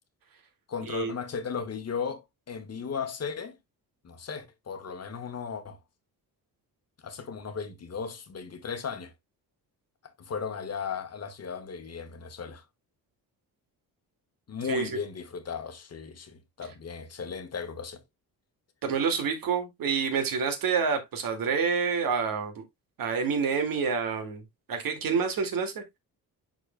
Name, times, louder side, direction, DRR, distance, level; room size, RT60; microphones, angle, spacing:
voice 1, 0.7-3.6 4.0-5.8 7.0-9.1 10.0-12.6 14.5-18.0, left 6 dB, 45° left, 1.4 m, -36 dB
voice 2, 18.8-22.6 23.0-24.4 24.7-26.0, right 5 dB, 65° right, 2.2 m, -28 dB
11.5 x 4.2 x 2.2 m
cardioid pair, 120°, 37 cm